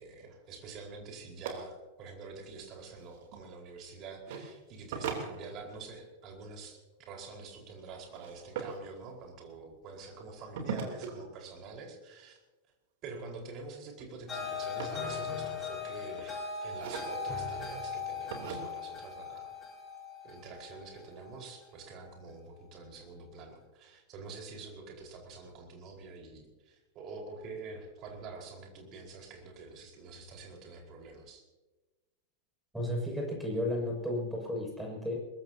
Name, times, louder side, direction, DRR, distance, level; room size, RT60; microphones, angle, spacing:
voice 1, 0.0-12.4 13.0-19.5 20.2-31.4, right 4 dB, 35° right, 1 dB, 4.7 m, -47 dB
sound 1, 1.4-1.5 2.8-3.4 4.2-4.4 4.9-5.9 8.1-8.8 10.6-11.1 13.0-13.3 13.7-15.6 16.1-16.3 16.7-17.4 18.3-18.6, right 7 dB, 55° right, 3.2 m, -39 dB
sound 2, 14.3-21.4, left 5 dB, 20° left, 4.7 m, -39 dB
voice 2, 32.7-35.2, left 1 dB, 5° right, -1 dB, 6.7 m, -33 dB
23.0 x 21.0 x 2.9 m, 1.2 s
figure-of-eight pair, 90°, 0 cm